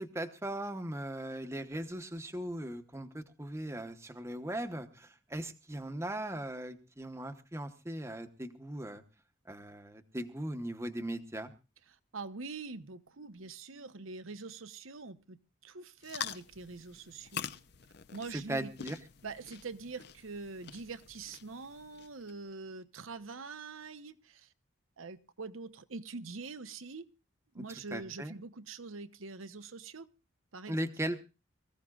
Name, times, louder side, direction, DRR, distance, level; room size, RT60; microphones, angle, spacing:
voice 1, 0.0-9.0 9.5-11.5 18.3-19.0 27.6-28.3 30.7-31.2, right 1 dB, 15° right, 7 dB, 0.9 m, -38 dB
voice 2, 12.1-17.5 18.1-18.7 19.2-24.5 25.0-27.0 27.5-30.1 30.5-30.8, right 4 dB, 90° right, 12 dB, 0.9 m, -44 dB
sound 1, 16.0-22.3, left 8 dB, 50° left, 0.6 m, -45 dB
24.0 x 15.0 x 2.4 m, 0.31 s
head